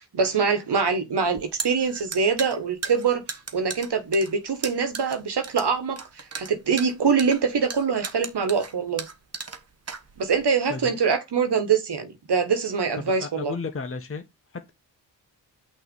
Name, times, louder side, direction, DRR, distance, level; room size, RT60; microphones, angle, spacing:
voice 1, 0.0-3.2 3.5-6.0 6.4-9.0 10.2-13.5, right 5 dB, 60° right, 1.4 m, -24 dB
sound 1, 1.3-10.5, right 5 dB, 35° right, 1.1 m, -36 dB
voice 2, 13.0-14.2 14.5-14.7, left 4 dB, 30° left, 1.1 m, -33 dB
5.9 x 3.3 x 5.3 m
supercardioid pair, 45°, 45 cm